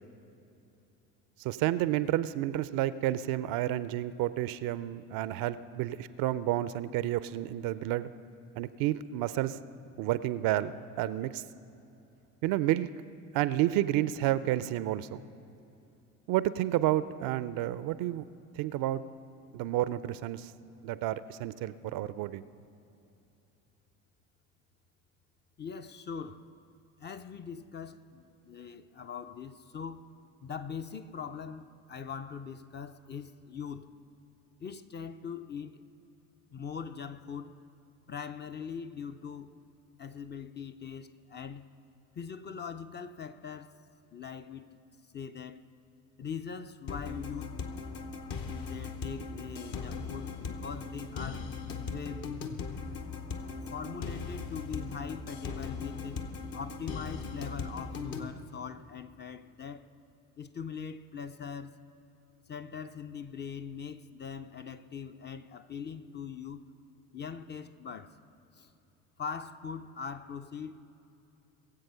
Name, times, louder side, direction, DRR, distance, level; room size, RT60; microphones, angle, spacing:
voice 1, 1.4-8.1 8.6-9.6 10.0-11.4 12.4-12.9 13.3-15.2 16.3-18.2 18.5-19.0 19.5-20.5 20.8-22.4, right 14 dB, 55° right, 0.5 m, -30 dB
voice 2, 25.6-26.4 27.0-30.1 30.4-33.9 34.6-35.8 36.5-37.6 38.1-39.6 40.0-41.7 42.2-43.8 44.1-44.7 45.1-45.6 46.2-47.6 48.5-51.5 51.9-52.3 53.7-56.2 56.5-59.9 60.4-61.8 62.5-66.7 67.1-68.2 68.5-68.7 69.2-70.8, left 6 dB, 25° left, 0.5 m, -41 dB
sound 1, 46.9-58.3, left 4 dB, 50° left, 1.1 m, -39 dB
21.0 x 7.8 x 5.5 m
hypercardioid pair, 55°, 42 cm